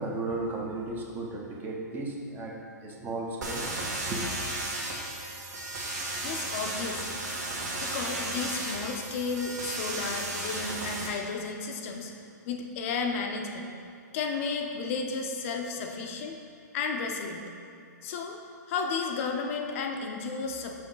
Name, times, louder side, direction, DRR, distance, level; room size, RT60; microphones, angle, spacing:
voice 1, 0.0-4.2, right 2 dB, 20° right, -1 dB, 0.9 m, -35 dB
sound 1, 3.4-11.1, right 2 dB, 70° right, 1.7 m, -34 dB
voice 2, 6.2-7.2 7.8-12.1 12.5-13.7 14.1-16.4 16.7-17.5 18.0-18.4 18.7-20.8, left 4 dB, 45° left, 3 dB, 0.7 m, -33 dB
6.0 x 5.9 x 3.9 m, 2.3 s
hypercardioid pair, 130°, 10 cm